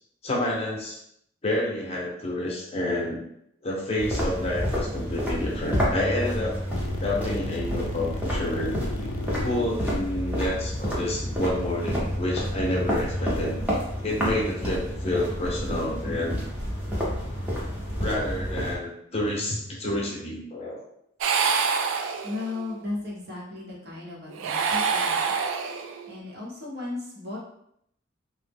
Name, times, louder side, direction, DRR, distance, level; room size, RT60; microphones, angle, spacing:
voice 1, 0.2-1.0 1.4-3.2 3.6-6.6 7.0-8.8 9.4-13.6 14.0-16.4 18.0-20.8, left 1 dB, 30° left, -3 dB, 0.7 m, -29 dB
sound 1, 4.0-18.8, equal, 10° right, 0.7 m, -29 dB
sound 2, 6.7-11.9, left 3 dB, 85° left, 0.3 m, -37 dB
sound 3, 21.2-22.7 24.3-26.1, right 5 dB, 80° right, 0.3 m, -26 dB
voice 2, 22.2-25.4 26.1-27.4, left 2 dB, 55° right, -4 dB, 0.9 m, -35 dB
3.0 x 2.1 x 3.4 m, 0.73 s
head